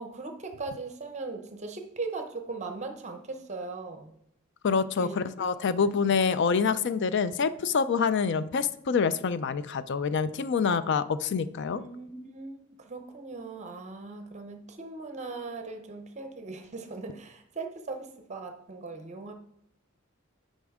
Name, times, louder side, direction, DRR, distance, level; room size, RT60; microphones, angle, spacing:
voice 1, 0.0-4.1 5.0-5.1 5.6-5.7 11.7-19.3, right 3 dB, 35° right, 5 dB, 0.7 m, -39 dB
voice 2, 4.6-11.8, left 5 dB, 55° left, 14 dB, 0.4 m, -26 dB
9.5 x 5.3 x 3.6 m, 0.77 s
head